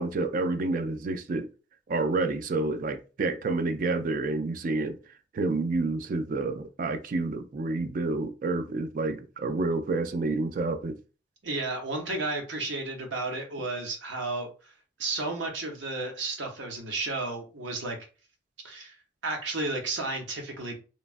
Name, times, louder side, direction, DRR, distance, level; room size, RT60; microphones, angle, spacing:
voice 1, 0.0-1.5 1.9-5.0 5.3-11.0, right 3 dB, 50° right, 0.3 m, -29 dB
voice 2, 11.4-14.7 15.0-18.0 18.6-19.0 19.2-20.8, right 2 dB, 85° right, 0.8 m, -32 dB
3.0 x 2.3 x 2.5 m
head